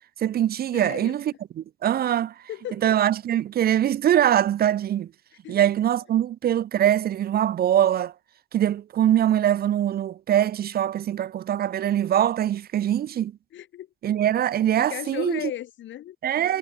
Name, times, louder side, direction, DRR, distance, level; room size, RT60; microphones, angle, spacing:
voice 1, 0.2-2.3 2.8-5.1 5.5-8.1 8.5-13.3 14.0-15.4 16.2-16.6, right 11 dB, 50° right, 0.5 m, -23 dB
voice 2, 0.7-1.2 2.5-3.0 5.4-5.7 13.5-13.9 14.8-16.2, left 12 dB, 70° left, 1.1 m, -36 dB
cardioid pair, 90°, 20 cm